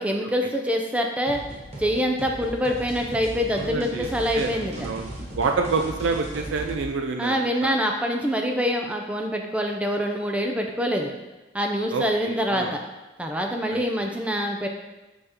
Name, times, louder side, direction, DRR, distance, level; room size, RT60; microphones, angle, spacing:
voice 1, 0.0-1.4 1.8-4.9 7.2-11.1 11.5-12.8 13.2-14.7, equal, 5° right, 2 dB, 0.4 m, -25 dB
sound 1, 1.3-6.9, right 1 dB, 35° right, 1.0 m, -37 dB
voice 2, 3.5-4.1 4.3-4.5 4.8-7.7 11.9-12.7 13.7-13.8, right 4 dB, 75° right, 4 dB, 0.4 m, -28 dB
6.7 x 4.9 x 2.9 m, 1.1 s
head